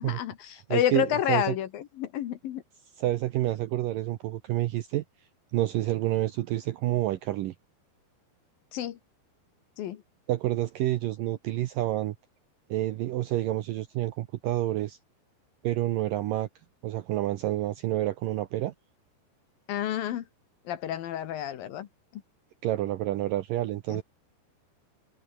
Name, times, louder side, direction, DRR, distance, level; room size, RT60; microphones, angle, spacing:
voice 1, 0.0-2.6 8.7-9.0 9.8-10.0 19.7-20.2 20.7-21.9 22.1-22.2 23.9-24.0, left 11 dB, 65° left, 2.7 m, -30 dB
voice 2, 0.7-1.5 3.0-5.0 5.5-7.5 10.3-12.2 12.7-15.0 15.6-16.5 16.8-18.7 22.6-24.0, right 14 dB, 75° right, 2.0 m, -28 dB
omnidirectional pair, 4.9 m